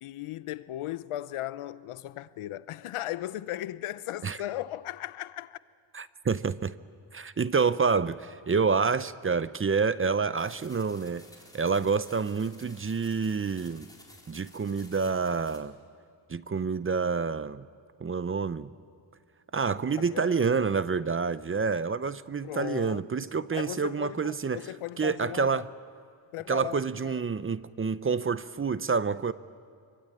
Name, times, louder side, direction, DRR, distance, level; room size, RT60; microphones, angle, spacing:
voice 1, 0.0-5.6 19.9-20.6 22.4-23.3 23.5-25.6 26.3-27.2, left 13 dB, 80° left, 0.8 m, -37 dB
voice 2, 5.9-6.7 7.1-11.2 11.5-13.9 14.3-15.7 16.3-17.7 18.0-18.7 19.5-24.7 25.0-25.7 26.5-29.3, right 5 dB, 25° right, 0.6 m, -28 dB
sound 1, 10.4-15.6, left 1 dB, 5° left, 4.2 m, -54 dB
25.5 x 24.5 x 8.7 m
cardioid pair, 115°, 50 cm